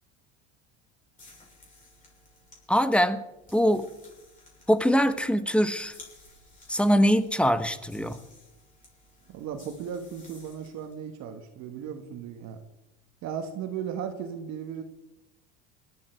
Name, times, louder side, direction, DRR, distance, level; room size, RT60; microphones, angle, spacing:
sound 1, 1.1-11.0, left 2 dB, 25° left, 6.6 m, -55 dB
voice 1, 2.7-3.2 3.5-3.9 4.7-5.9 6.7-8.2, equal, 5° left, 11 dB, 1.1 m, -23 dB
voice 2, 9.3-12.6 13.2-14.8, right 8 dB, 55° right, 6 dB, 1.7 m, -36 dB
19.0 x 12.5 x 4.6 m, 0.96 s
supercardioid pair, 105°, 32 cm